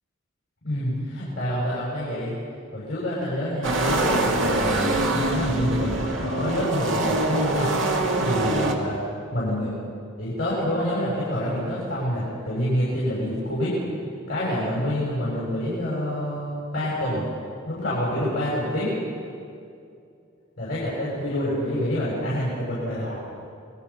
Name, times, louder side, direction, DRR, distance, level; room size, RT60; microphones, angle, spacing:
voice 1, 0.6-2.3 2.7-7.7 8.2-9.0 9.3-9.7 10.2-13.8 14.3-17.3 17.7-18.9 20.6-23.2, equal, 50° left, -8 dB, 6.9 m, -27 dB
sound 1, 3.6-8.7, right 2 dB, 70° right, 2.3 m, -24 dB
28.5 x 20.5 x 5.9 m, 2.5 s
head